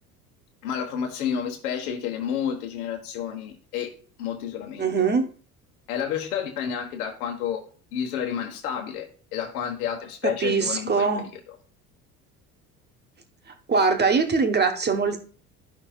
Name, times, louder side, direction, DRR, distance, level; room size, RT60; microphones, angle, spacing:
voice 1, 0.6-3.9 4.2-5.1 5.9-7.6 7.9-11.6, left 8 dB, 70° left, 3 dB, 1.3 m, -30 dB
voice 2, 4.8-5.3 10.4-11.2 13.7-15.2, right 4 dB, 20° right, 7 dB, 1.3 m, -22 dB
13.0 x 5.6 x 2.4 m, 0.39 s
figure-of-eight pair, 65°, 45 cm